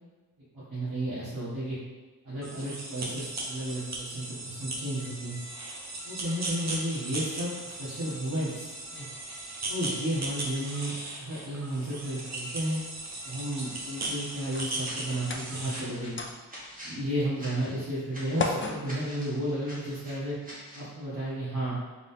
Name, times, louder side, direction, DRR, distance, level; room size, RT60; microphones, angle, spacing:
voice 1, 0.5-1.8 2.2-5.4 6.0-9.0 9.7-10.9 11.2-12.8 13.2-16.2 16.8-20.4 20.7-21.8, right 1 dB, 65° right, -11 dB, 1.3 m, -33 dB
sound 1, 2.4-15.9, right 2 dB, 45° right, 0.8 m, -37 dB
sound 2, 3.3-20.0, left 3 dB, 35° left, 0.4 m, -43 dB
sound 3, 14.8-20.9, equal, 20° right, 1.3 m, -46 dB
3.8 x 3.7 x 2.7 m, 1.3 s
wide cardioid pair, 115°, 38 cm